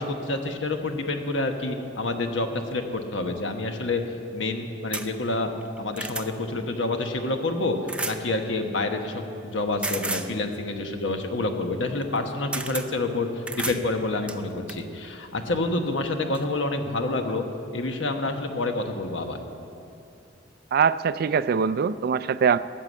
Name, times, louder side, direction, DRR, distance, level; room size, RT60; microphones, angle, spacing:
voice 1, 0.0-4.0 4.3-5.5 5.8-7.8 8.0-13.3 13.5-17.4 17.7-19.4, left 2 dB, 90° left, 5 dB, 1.2 m, -28 dB
sound 1, 4.9-5.1 5.6-6.3 7.9-8.2 9.8-10.3 12.0-12.2 12.5-12.9 13.5-13.8 14.3-14.8 15.8-16.0 16.3-16.4, right 2 dB, 5° right, 0.5 m, -32 dB
voice 2, 20.7-22.6, right 6 dB, 55° right, 15 dB, 0.3 m, -22 dB
13.5 x 7.9 x 8.5 m, 2.6 s
head